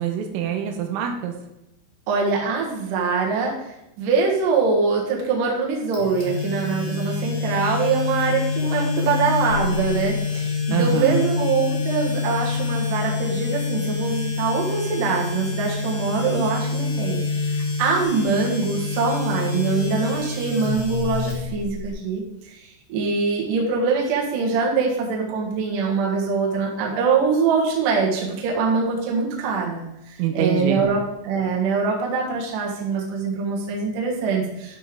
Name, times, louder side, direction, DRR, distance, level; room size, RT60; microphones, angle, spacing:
voice 1, 0.0-1.3 10.7-11.2 30.2-30.9, right 8 dB, 90° right, 4 dB, 3.5 m, -25 dB
voice 2, 2.1-34.8, right 4 dB, 60° right, -2 dB, 2.4 m, -23 dB
sound 1, 5.9-21.9, left 4 dB, 50° left, 3.6 m, -26 dB
12.0 x 5.4 x 3.7 m, 0.88 s
omnidirectional pair, 5.9 m